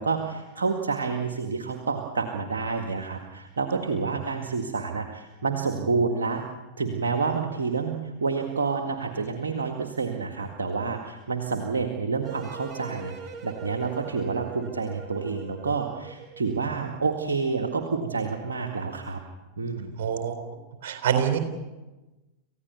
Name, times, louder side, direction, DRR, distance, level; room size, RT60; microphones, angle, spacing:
voice 1, 0.0-6.4 6.8-19.2 19.6-19.9, right 4 dB, 70° right, 4 dB, 2.0 m, -29 dB
sound 1, 12.2-16.6, right 5 dB, 25° right, 3.1 m, -43 dB
voice 2, 20.0-20.4 20.8-21.4, right 8 dB, 55° right, 6 dB, 4.0 m, -25 dB
28.0 x 16.0 x 6.9 m, 1.1 s
figure-of-eight pair, 90°, 0 cm